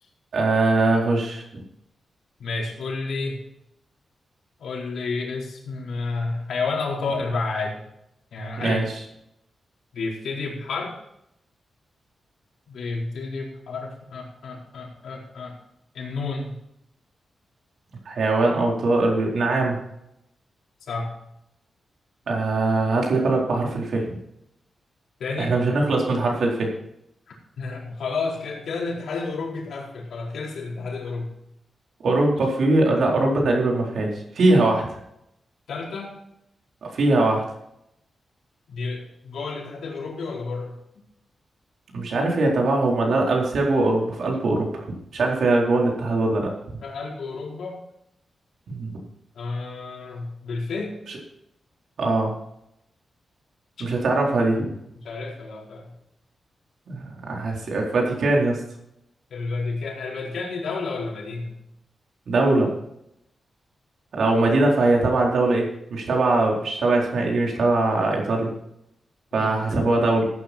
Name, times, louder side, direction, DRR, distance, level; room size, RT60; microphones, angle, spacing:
voice 1, 0.3-1.6 8.6-8.9 18.1-19.8 22.3-24.2 25.4-26.7 32.0-34.1 34.3-35.0 36.8-37.4 41.9-44.8 45.1-46.5 48.7-49.0 51.1-51.2 52.0-52.3 53.8-54.7 56.9-58.6 62.3-62.7 64.1-68.5 69.3-70.3, right 2 dB, 70° right, -1 dB, 4.1 m, -21 dB
voice 2, 2.4-3.4 4.6-7.8 8.3-8.8 9.9-10.9 12.7-15.6 15.9-16.6 20.9-21.1 25.2-25.5 27.3-31.3 35.7-36.1 38.7-40.8 46.8-47.8 49.3-50.9 53.8-53.9 54.9-55.9 59.3-61.6 69.4-69.5, left 3 dB, 85° left, -2 dB, 4.4 m, -30 dB
15.5 x 9.4 x 4.3 m, 0.79 s
wide cardioid pair, 110°, 0 cm